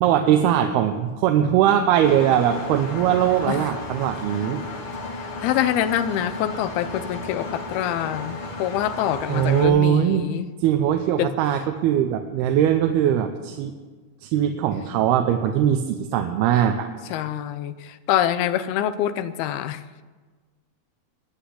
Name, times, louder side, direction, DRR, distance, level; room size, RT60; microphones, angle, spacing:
voice 1, 0.0-4.6 9.3-10.3 10.6-13.8 14.2-16.9, right 10 dB, 90° right, 6 dB, 2.8 m, -21 dB
Engine, 2.0-9.6, left 2 dB, 50° left, 1.9 m, -34 dB
voice 2, 5.4-10.5 11.2-11.3 17.1-19.8, left 11 dB, 85° left, 12 dB, 2.7 m, -25 dB
21.5 x 8.0 x 8.4 m, 1.4 s
omnidirectional pair, 4.4 m